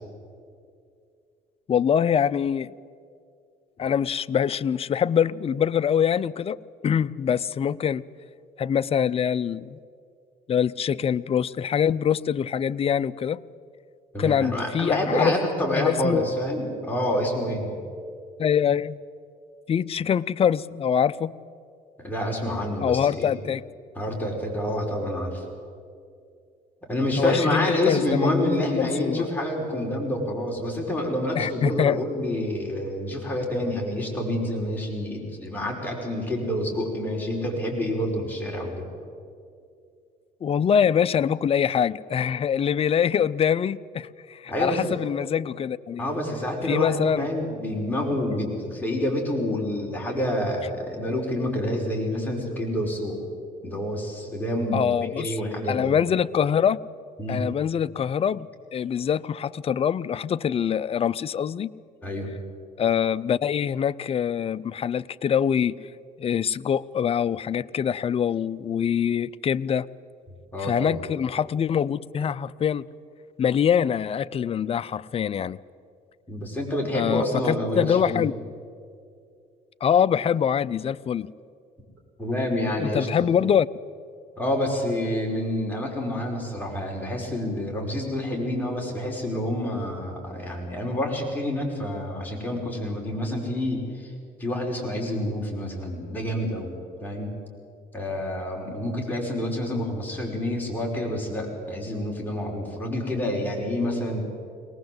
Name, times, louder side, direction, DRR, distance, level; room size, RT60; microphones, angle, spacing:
voice 1, 1.7-2.7 3.8-6.6 6.8-8.0 8.6-9.8 10.5-13.4 14.2-15.3 15.8-16.3 18.4-19.0 19.7-21.3 22.8-23.6 27.2-29.3 31.3-32.0 40.4-46.0 46.6-47.3 54.7-55.4 55.7-56.8 57.3-61.7 62.8-65.7 66.2-69.9 70.6-72.8 73.4-75.6 76.9-78.3 79.8-81.3 82.8-83.7, left 8 dB, 35° left, 15 dB, 0.5 m, -24 dB
voice 2, 14.1-17.8 22.0-23.4 24.0-25.4 26.9-38.9 44.5-44.9 46.0-53.2 53.6-55.9 57.2-57.5 62.0-62.3 70.5-71.0 76.3-78.2 82.2-83.1 84.3-94.1 94.4-96.7 97.0-97.3 97.9-104.3, left 1 dB, 10° left, -1 dB, 5.5 m, -28 dB
22.0 x 19.0 x 7.9 m, 2.4 s
cardioid pair, 110°, 17 cm